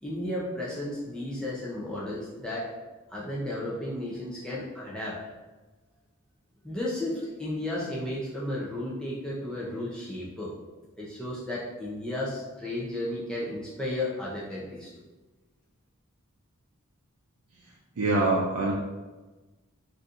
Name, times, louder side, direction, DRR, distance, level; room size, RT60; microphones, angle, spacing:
voice 1, 0.0-2.7 3.1-5.2 6.6-10.5 11.0-14.9, left 1 dB, 5° left, -7 dB, 0.4 m, -33 dB
voice 2, 18.0-18.7, right 2 dB, 75° right, -3 dB, 0.4 m, -24 dB
4.0 x 2.5 x 2.4 m, 1.2 s
head